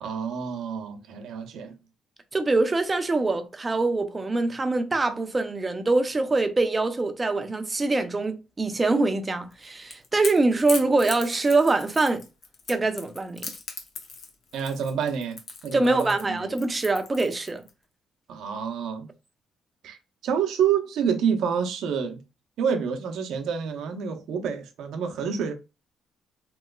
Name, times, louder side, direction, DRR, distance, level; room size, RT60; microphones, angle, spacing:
voice 1, 0.0-1.7 14.5-16.5 18.3-19.1 19.8-20.0 20.2-22.2 22.6-25.5, right 7 dB, 80° right, 0.6 m, -28 dB
voice 2, 2.3-12.2 12.7-13.4 15.7-17.6, right 3 dB, 25° right, 0.5 m, -24 dB
Crackle / Crack, 9.5-17.7, left 4 dB, 60° left, 0.8 m, -38 dB
3.0 x 2.9 x 2.3 m
cardioid pair, 90°, 0 cm